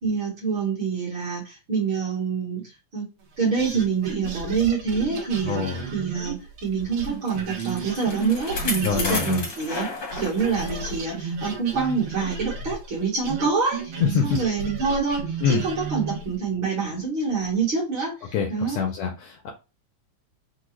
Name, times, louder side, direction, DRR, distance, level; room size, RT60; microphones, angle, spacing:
voice 1, 0.0-3.1 3.4-9.9 10.2-13.9 14.2-18.8, right 5 dB, 50° right, -4 dB, 1.7 m, -26 dB
sound 1, 3.6-9.9 10.1-16.3, right 4 dB, 85° right, 1.1 m, -34 dB
voice 2, 5.4-5.8 8.8-9.4 14.0-14.4 15.4-15.6 18.3-19.5, left 7 dB, 75° left, 2 dB, 1.5 m, -25 dB
Bicycle, 7.0-11.0 11.4-11.5 12.3-12.4, left 3 dB, 55° left, 1.0 m, -33 dB
4.7 x 2.3 x 3.1 m, 0.28 s
omnidirectional pair, 3.4 m